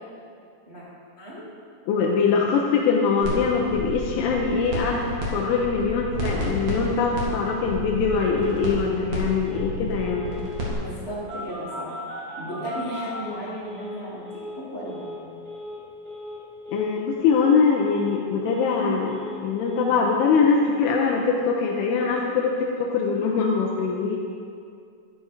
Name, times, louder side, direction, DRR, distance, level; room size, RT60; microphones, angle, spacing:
voice 1, 1.9-10.3 16.7-24.2, left 5 dB, 80° left, -1 dB, 3.2 m, -23 dB
sound 1, 3.2-3.4 3.7-5.3 5.5-10.7, right 1 dB, 50° right, 2.2 m, -31 dB
Telephone, 5.2-5.3 5.6-6.0 6.3-6.4 6.7-7.0 7.4-7.5 8.0-8.7 9.4-9.7 9.9-10.7 11.3-14.0 14.2-14.6 14.8-15.2 15.4-15.8 16.0-16.4 16.6-17.0 17.2-17.6 17.8-18.8 19.0-19.4 19.6-19.9, left 1 dB, 25° right, 2.2 m, -38 dB
voice 2, 10.8-11.9 12.4-14.2 14.7-15.4, equal, 75° right, -10 dB, 0.5 m, -34 dB
12.0 x 7.7 x 4.9 m, 2.4 s
omnidirectional pair, 5.7 m